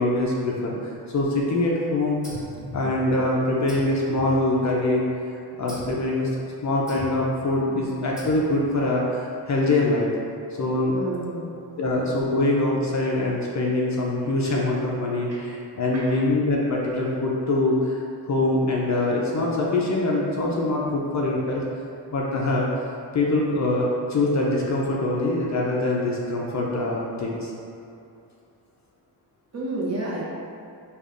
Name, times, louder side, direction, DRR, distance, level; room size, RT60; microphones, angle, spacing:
voice 1, 0.0-2.2 2.7-5.0 5.6-6.3 6.6-10.1 10.6-10.9 11.8-21.6 22.1-22.8 23.1-27.5, left 2 dB, 40° left, -3 dB, 0.4 m, -24 dB
sound 1, 2.2-3.3 3.7-5.0 5.7-6.1 6.9-7.4 8.2-8.8, left 1 dB, ahead, 0.9 m, -39 dB
voice 2, 10.9-11.6 15.3-15.4 15.9-16.2 29.5-30.2, right 2 dB, 35° right, -6 dB, 0.8 m, -30 dB
5.2 x 2.3 x 2.4 m, 2.6 s
wide cardioid pair, 130°, 44 cm